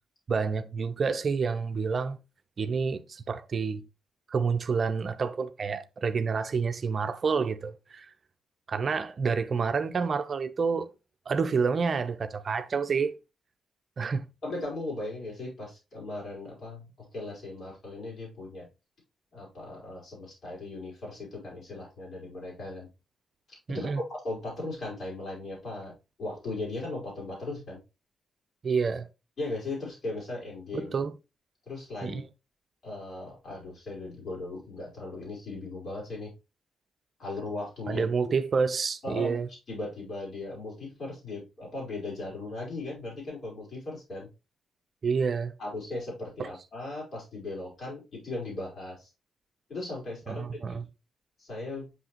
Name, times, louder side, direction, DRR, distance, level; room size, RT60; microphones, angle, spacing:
voice 1, 0.3-2.2 2.6-3.8 4.3-8.1 8.7-10.9 11.3-13.2 14.0-14.3 23.7-24.0 28.6-29.1 30.7-31.1 32.0-32.2 37.9-39.5 45.0-45.5 46.4-46.5 50.3-50.9, right 5 dB, 50° right, 0.5 m, -28 dB
voice 2, 14.4-18.7 19.3-22.9 23.7-25.9 26.2-27.8 29.4-30.9 31.7-32.2 32.8-36.3 37.2-38.4 39.0-39.4 39.7-44.3 45.6-49.1 49.7-50.8 51.4-51.9, left 2 dB, 55° left, 4.0 m, -37 dB
6.2 x 5.5 x 2.9 m
hypercardioid pair, 40°, 0 cm